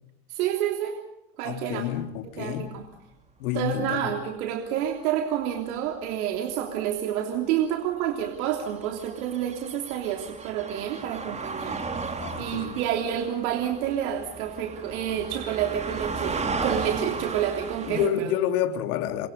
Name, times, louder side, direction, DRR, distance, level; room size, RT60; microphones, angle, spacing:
voice 1, 0.3-1.0 1.4-1.8 2.2-2.9 3.5-18.3, right 10 dB, 70° right, 3.4 m, -29 dB
voice 2, 1.4-2.7 3.4-4.1 12.2-12.8 17.9-19.3, left 11 dB, 70° left, 3.1 m, -29 dB
sound 1, 5.7-5.8 8.2-18.1, right 4 dB, 15° right, 2.9 m, -35 dB
28.5 x 24.5 x 5.5 m
supercardioid pair, 130°, 45 cm